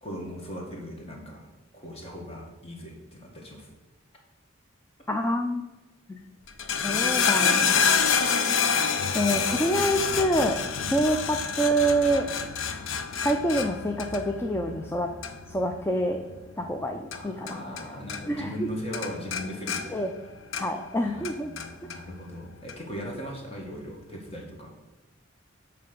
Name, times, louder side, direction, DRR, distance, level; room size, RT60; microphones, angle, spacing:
voice 1, 0.0-1.5 1.7-3.7 10.8-10.9 17.1-20.0 21.0-24.7, equal, 30° left, 0 dB, 1.6 m, -39 dB
voice 2, 5.1-5.7 6.1-6.2 6.8-8.0 9.1-10.6 10.9-12.3 13.2-15.1 15.5-16.2 16.6-17.6 18.3-18.7 19.9-20.1 20.6-21.5, right 1 dB, 10° left, 3 dB, 0.4 m, -26 dB
sound 1, 6.4-20.2, equal, 50° left, 1.8 m, -52 dB
sound 2, 6.5-17.8 18.1-18.7 18.9-20.9 21.2-22.0 22.7-22.8, left 6 dB, 85° left, 0.6 m, -27 dB
Bowed string instrument, 6.9-10.5, right 3 dB, 45° right, 0.8 m, -43 dB
9.1 x 3.3 x 6.8 m, 1.1 s
head